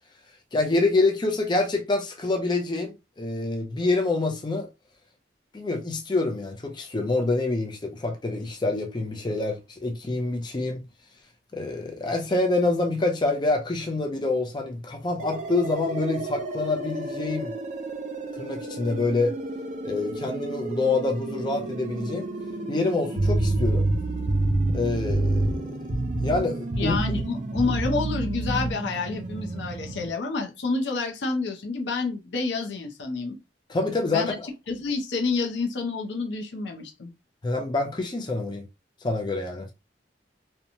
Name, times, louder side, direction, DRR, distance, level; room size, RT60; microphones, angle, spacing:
voice 1, 0.5-4.7 5.5-10.9 11.5-17.5 18.4-19.4 19.8-22.3 22.7-23.9 24.7-25.8 26.2-27.0 33.7-34.5 37.4-38.6 39.0-39.7, left 3 dB, 25° left, 0.5 m, -26 dB
sound 1, 15.2-30.1, right 2 dB, 40° right, 0.5 m, -34 dB
sound 2, 23.2-25.6 25.9-26.4 26.7-27.3 27.5-28.7, right 2 dB, 60° right, 0.9 m, -25 dB
voice 2, 26.8-33.4 34.1-34.3 34.7-37.1, left 4 dB, 75° left, 0.6 m, -29 dB
2.9 x 2.2 x 2.6 m
head